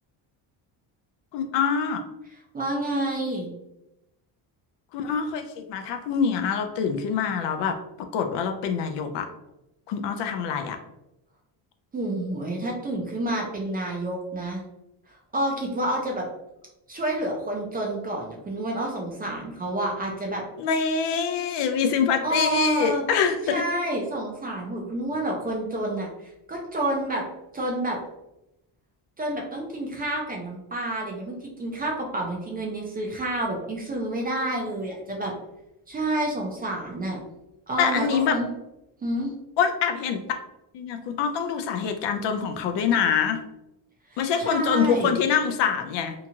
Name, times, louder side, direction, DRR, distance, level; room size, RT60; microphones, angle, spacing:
voice 1, 1.3-2.0 4.9-9.3 9.9-10.8 20.6-23.6 37.8-38.4 39.6-40.2 40.7-43.4 44.2-46.1, left 7 dB, 70° left, 6 dB, 0.5 m, -25 dB
voice 2, 2.5-3.6 11.9-14.6 15.3-16.3 16.9-20.4 22.2-23.0 23.5-26.1 26.5-27.3 27.5-28.0 29.2-35.3 35.9-37.2 37.7-38.5 39.0-39.3 44.1-45.1, right 1 dB, 20° right, -1 dB, 0.4 m, -29 dB
2.8 x 2.3 x 2.7 m, 0.90 s
cardioid pair, 135°, 45 cm